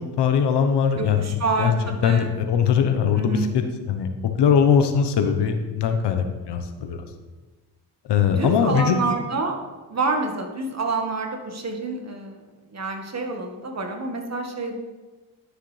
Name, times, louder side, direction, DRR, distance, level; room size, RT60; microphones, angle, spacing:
voice 1, 0.2-1.3 1.6-1.7 2.0-4.1 4.4-7.0 8.1-9.0, left 7 dB, 70° left, 7 dB, 1.1 m, -21 dB
voice 2, 1.0-2.3 3.2-3.5 8.3-9.6 9.9-12.4 12.7-14.8, right 3 dB, 40° right, 3 dB, 1.6 m, -27 dB
11.5 x 6.5 x 3.3 m, 1.3 s
supercardioid pair, 65°, 42 cm